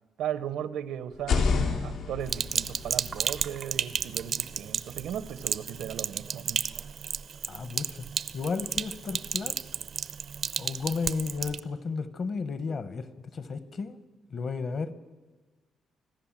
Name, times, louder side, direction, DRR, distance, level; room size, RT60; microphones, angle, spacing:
voice 1, 0.2-6.6, right 9 dB, 90° right, 1.0 m, -36 dB
sound 1, 1.1-5.0, left 5 dB, 90° left, 3.6 m, -31 dB
Sink (filling or washing), 2.3-11.6, right 7 dB, 45° right, 0.5 m, -33 dB
voice 2, 7.5-8.1 8.3-9.6 10.6-14.0 14.3-14.9, left 4 dB, 40° left, 1.1 m, -33 dB
25.5 x 15.5 x 7.4 m
cardioid pair, 160°, 0 cm